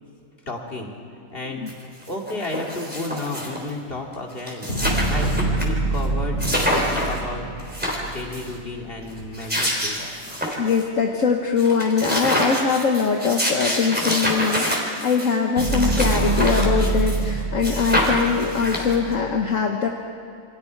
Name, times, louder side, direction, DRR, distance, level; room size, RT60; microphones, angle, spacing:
voice 1, 0.5-0.9 1.3-1.7 2.1-7.4 8.0-10.2, left 2 dB, 40° left, 0 dB, 2.7 m, -32 dB
sound 1, 1.7-1.8 2.0-3.7 4.1-4.2 4.4-5.6 6.0-6.1 6.4-7.2 7.6-8.5 9.2-10.8 11.2-11.3 11.6-17.3 17.6-19.1, equal, 5° right, 3.7 m, -26 dB
sound 2, 4.7-9.0 15.6-19.3, right 2 dB, 80° left, 8.6 m, -25 dB
voice 2, 10.6-19.9, left 5 dB, 65° left, 2 dB, 1.5 m, -22 dB
28.5 x 25.0 x 4.7 m, 2.6 s
omnidirectional pair, 1.4 m